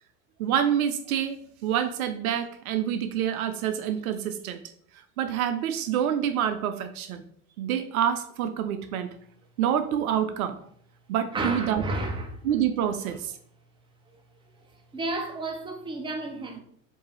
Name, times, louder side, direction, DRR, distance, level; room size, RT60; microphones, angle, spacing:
voice 1, 0.4-4.6 5.2-7.2 7.6-9.1 9.6-10.6 11.1-11.8 12.4-13.4, right 9 dB, 70° right, 0.6 m, -27 dB
voice 2, 11.3-12.6 13.1-13.2 14.9-16.6, right 2 dB, 10° right, 0.7 m, -32 dB
4.5 x 2.7 x 3.1 m
hypercardioid pair, 85°, 45 cm